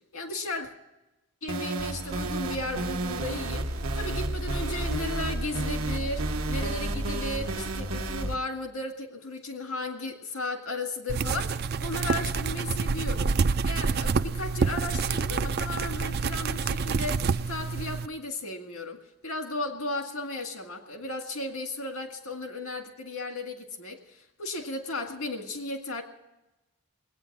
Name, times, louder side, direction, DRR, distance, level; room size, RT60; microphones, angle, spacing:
voice 1, 0.1-0.7 1.4-13.3 13.6-26.0, left 2 dB, 80° left, 4 dB, 2.0 m, -35 dB
sound 1, 1.5-8.3, right 2 dB, 75° right, 1.2 m, -31 dB
sound 2, 11.1-18.1, right 4 dB, 45° right, 0.4 m, -27 dB
20.5 x 9.2 x 6.1 m, 0.98 s
head